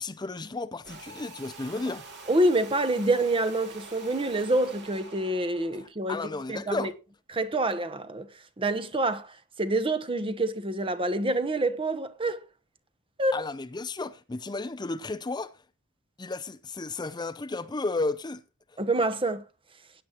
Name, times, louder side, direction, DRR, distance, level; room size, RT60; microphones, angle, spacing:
voice 1, 0.0-2.0 6.1-6.9 13.3-15.6 16.2-18.4 18.7-18.8, left 3 dB, 20° left, 0.5 m, -33 dB
sound 1, 0.8-5.9, right 3 dB, 55° right, 2.5 m, -46 dB
voice 2, 2.3-6.2 6.5-6.9 7.3-8.3 8.6-12.4 13.2-13.4 18.8-19.4, right 2 dB, 25° right, 1.0 m, -27 dB
17.0 x 10.0 x 2.9 m
head